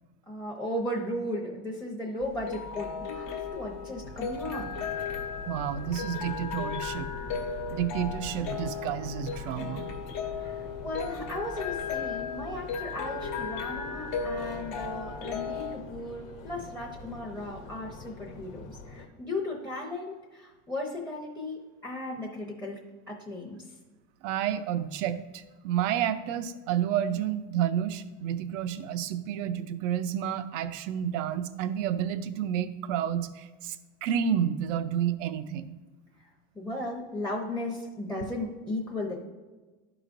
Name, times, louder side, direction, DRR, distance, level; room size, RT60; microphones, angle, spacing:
voice 1, 0.3-4.7 10.4-22.8 23.1-23.6 36.5-39.3, left 1 dB, 5° left, 0 dB, 0.7 m, -36 dB
sound 1, 2.2-15.8, left 5 dB, 55° left, 1.1 m, -36 dB
Subway metro underground, 4.0-19.1, left 4 dB, 75° left, 1.1 m, -44 dB
voice 2, 5.5-7.1 7.7-10.0 24.2-35.7, right 9 dB, 80° right, 12 dB, 0.6 m, -30 dB
12.0 x 4.9 x 2.5 m, 1.2 s
supercardioid pair, 135°, 37 cm